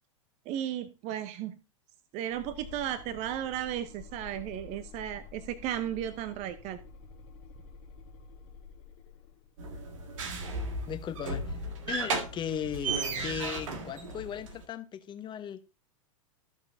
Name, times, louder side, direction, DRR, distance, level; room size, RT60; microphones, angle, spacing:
voice 1, 0.5-1.5 2.1-6.8, right 11 dB, 40° right, 0.8 m, -35 dB
sound 1, 2.3-9.5, left 6 dB, 45° left, 1.3 m, -50 dB
sound 2, 9.6-14.6, right 3 dB, 65° right, 1.9 m, -35 dB
voice 2, 10.9-11.6 11.9-13.0 13.2-15.6, left 9 dB, 25° left, 1.1 m, -37 dB
14.5 x 6.7 x 2.7 m
hypercardioid pair, 100°, 18 cm